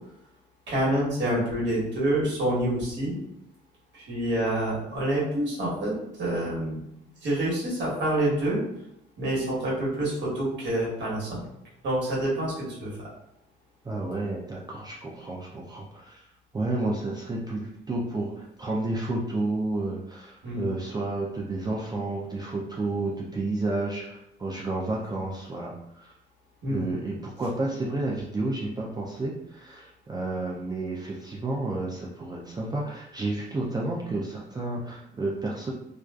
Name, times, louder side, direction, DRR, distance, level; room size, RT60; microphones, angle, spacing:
voice 1, 0.7-3.1 3.9-6.8 7.2-8.6 9.2-11.4 11.8-13.1 20.4-20.7 26.6-26.8, right 1 dB, 60° right, -5 dB, 1.2 m, -27 dB
voice 2, 13.8-16.2 16.5-26.1 26.7-35.7, right 2 dB, 20° right, -3 dB, 0.4 m, -31 dB
2.3 x 2.3 x 2.3 m, 0.80 s
cardioid pair, 90°, 20 cm